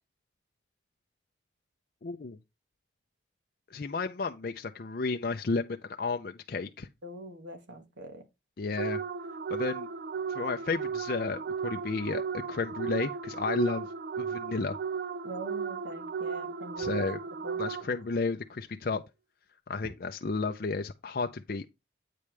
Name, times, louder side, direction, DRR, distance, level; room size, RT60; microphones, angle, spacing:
voice 1, 2.0-2.4 3.7-6.9 8.6-9.0 9.5-9.9 10.3-12.2 12.5-13.9 14.2-14.8 16.8-17.2 17.6-19.0 19.7-21.6, left 4 dB, 50° left, 0.5 m, -32 dB
voice 2, 7.0-8.2 15.2-17.0 17.4-17.6, right 1 dB, 80° right, 1.8 m, -43 dB
sound 1, 8.8-18.2, right 6 dB, 55° right, 0.3 m, -35 dB
8.5 x 5.1 x 3.2 m
head